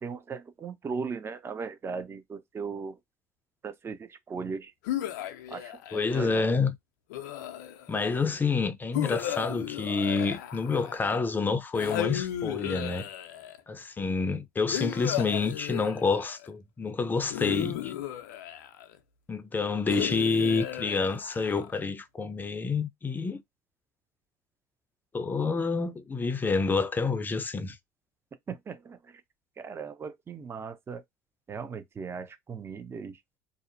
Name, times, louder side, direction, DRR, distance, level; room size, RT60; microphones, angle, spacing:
voice 1, 0.0-3.0 3.6-4.7 5.5-6.5 28.5-29.2 29.6-31.0 31.5-33.2, right 5 dB, 25° right, 0.6 m, -38 dB
sound 1, 4.8-6.4 7.1-8.0 8.9-11.1 11.7-13.6 14.7-16.5 17.3-19.0 19.9-21.8, left 12 dB, 80° left, 0.5 m, -35 dB
voice 2, 5.9-6.7 7.9-13.1 13.7-17.9 19.3-23.4 25.1-27.8, left 4 dB, 20° left, 0.5 m, -28 dB
2.7 x 2.0 x 2.5 m
supercardioid pair, 85°, 9 cm